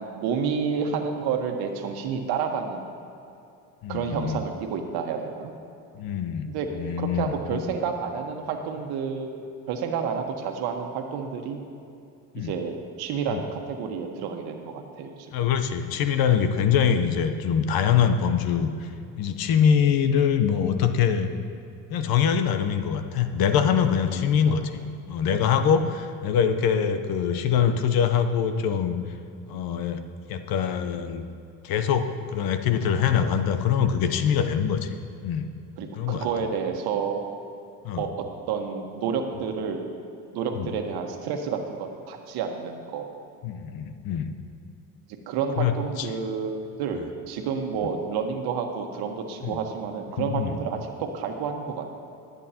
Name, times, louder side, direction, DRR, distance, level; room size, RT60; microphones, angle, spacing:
voice 1, 0.0-2.9 3.9-5.5 6.5-6.7 7.0-9.4 9.7-11.6 12.3-15.3 24.1-24.6 26.8-26.9 29.5-29.6 30.9-31.0 33.2-33.3 35.8-37.2 38.0-40.0 40.3-43.1 45.3-52.0, right 6 dB, 70° right, 4 dB, 1.4 m, -30 dB
voice 2, 3.8-4.4 5.9-6.5 6.7-7.6 12.3-12.5 13.3-13.4 15.3-18.9 19.2-21.3 21.9-24.8 25.1-29.0 29.5-30.0 30.3-31.3 31.6-35.0 35.2-35.5 36.0-36.3 37.8-38.0 40.5-40.7 43.4-44.3 45.6-46.1 49.4-49.6 50.2-50.6, left 7 dB, 65° left, 8 dB, 1.0 m, -24 dB
22.5 x 8.4 x 2.9 m, 2.6 s
supercardioid pair, 85°, 39 cm